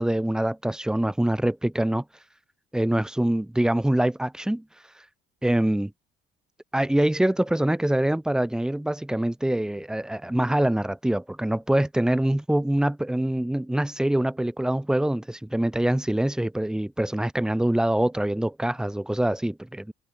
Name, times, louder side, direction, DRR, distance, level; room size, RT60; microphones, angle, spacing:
voice 1, 0.0-2.0 2.7-4.6 5.4-5.9 6.7-19.9, right 1 dB, 5° right, 7.3 m, -24 dB
cardioid pair, 155°, 17 cm